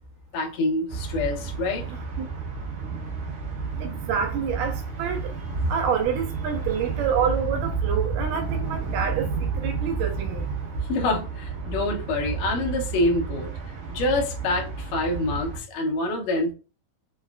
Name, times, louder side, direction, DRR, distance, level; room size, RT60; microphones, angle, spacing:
voice 1, 0.3-1.9 10.9-13.5 13.9-16.5, left 2 dB, 75° left, 1.6 m, -26 dB
sound 1, 0.9-15.6, right 5 dB, 65° right, 2.4 m, -31 dB
voice 2, 3.8-5.3 5.7-10.5, right 7 dB, 80° right, 2.1 m, -27 dB
5.5 x 2.3 x 2.3 m
omnidirectional pair, 4.0 m